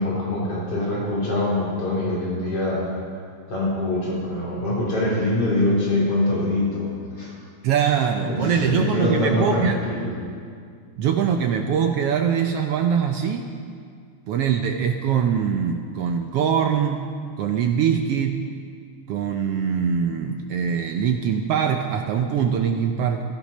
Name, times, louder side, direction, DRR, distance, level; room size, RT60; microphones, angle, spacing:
voice 1, 0.0-2.8 3.5-7.3 8.2-10.1, left 1 dB, 50° left, -5 dB, 4.5 m, -24 dB
voice 2, 7.6-9.8 11.0-13.5 14.3-17.0 17.4-18.4 19.1-23.2, right 7 dB, 80° right, 4 dB, 1.3 m, -23 dB
16.5 x 13.5 x 5.4 m, 2.2 s
omnidirectional pair, 3.5 m